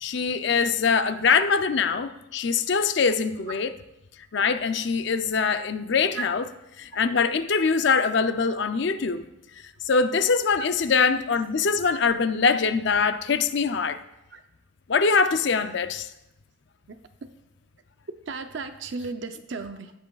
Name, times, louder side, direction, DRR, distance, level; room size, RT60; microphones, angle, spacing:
voice 1, 0.0-3.7 4.3-6.4 6.8-9.3 9.8-14.0 14.9-16.1, left 5 dB, 55° left, 0.5 m, -23 dB
voice 2, 18.1-19.9, right 4 dB, 60° right, 0.6 m, -35 dB
16.5 x 7.4 x 2.4 m
head